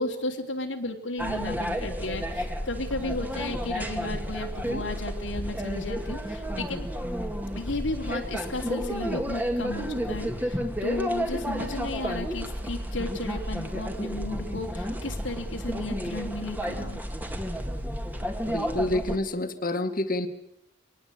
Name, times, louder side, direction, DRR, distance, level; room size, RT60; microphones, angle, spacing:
voice 1, 0.0-6.9 7.5-17.0, left 2 dB, 90° left, 1 dB, 3.3 m, -34 dB
sound 1, 1.2-19.2, equal, 10° right, 2.2 m, -31 dB
voice 2, 18.5-20.3, left 1 dB, 45° left, 8 dB, 2.2 m, -28 dB
24.5 x 19.5 x 8.7 m, 0.79 s
head